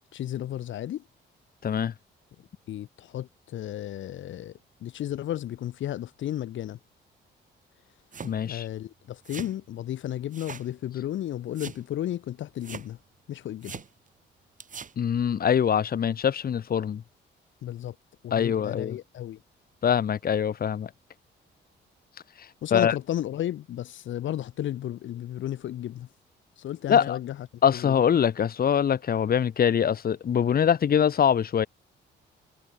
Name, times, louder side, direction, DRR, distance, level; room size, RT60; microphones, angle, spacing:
voice 1, 0.1-1.0 2.7-4.5 4.8-6.8 8.4-13.0 13.3-13.8 17.6-17.9 18.2-19.4 22.6-26.1 26.6-27.4 27.7-27.9, left 12 dB, 75° left, 3.1 m, -33 dB
voice 2, 1.6-1.9 8.2-8.7 15.0-17.0 18.3-19.0 19.8-20.9 22.4-22.9 26.9-27.2 27.6-31.7, left 8 dB, 50° left, 1.4 m, -23 dB
Footsteps various, 8.1-8.4 9.2-9.5 10.3-10.7 11.0-11.1 11.5-11.8 12.6-12.9 13.6-13.9 14.6-14.9, right 6 dB, 40° right, 3.9 m, -40 dB
cardioid pair, 90°, 20 cm